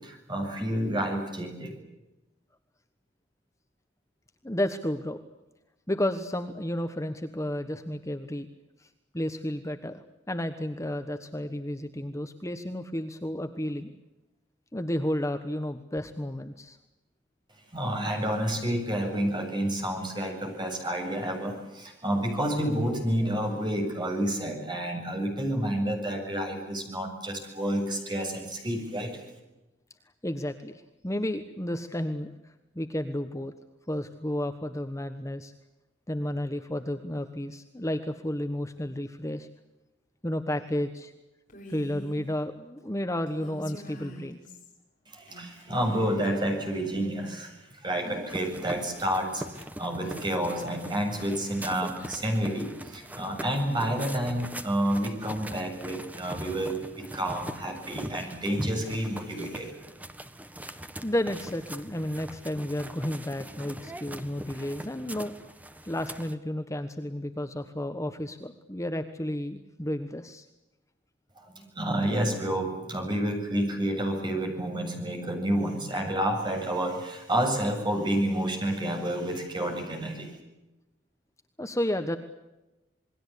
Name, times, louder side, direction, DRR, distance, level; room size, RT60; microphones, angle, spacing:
voice 1, 0.0-1.7 17.7-29.2 45.1-59.7 71.4-80.4, right 1 dB, 25° right, 3 dB, 7.6 m, -29 dB
voice 2, 4.4-5.2 5.9-8.5 8.8-8.9 9.1-10.0 10.3-13.9 14.7-16.8 30.2-33.5 33.9-35.5 36.1-39.5 40.2-41.1 41.7-44.4 61.0-65.3 65.8-70.5 81.6-82.2, left 1 dB, 15° left, 7 dB, 1.3 m, -32 dB
Female speech woman speaking, 41.5-42.2 43.3-44.7 45.3-46.2, left 1 dB, 45° left, 7.7 m, -45 dB
sound 1, 48.3-66.3, right 1 dB, 10° right, 1.5 m, -41 dB
28.0 x 21.5 x 8.5 m, 1.0 s
head